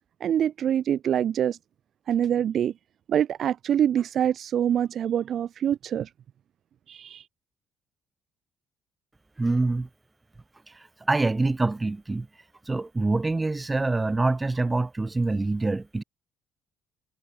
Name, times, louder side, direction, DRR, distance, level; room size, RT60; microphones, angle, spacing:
voice 1, 0.2-1.6 2.1-2.7 3.1-6.1 6.9-7.2, right 9 dB, 55° right, 1.2 m, -25 dB
voice 2, 9.4-9.9 11.1-12.3 12.7-16.0, right 2 dB, 15° right, 6.6 m, -25 dB
cardioid pair, 105°, 0 cm